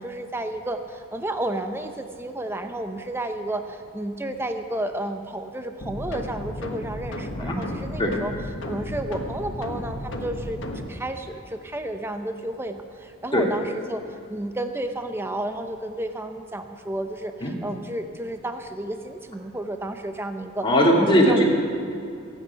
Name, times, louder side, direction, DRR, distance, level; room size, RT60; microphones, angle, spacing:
voice 1, 0.0-8.3 8.7-10.6 10.9-14.0 14.3-20.7 21.0-21.5, right 1 dB, 10° right, 7 dB, 0.7 m, -31 dB
sound 1, 5.8-10.9, left 1 dB, 60° left, 1.5 m, -33 dB
voice 2, 20.6-21.5, equal, 25° left, -2 dB, 2.3 m, -19 dB
23.0 x 9.2 x 5.7 m, 2.5 s
head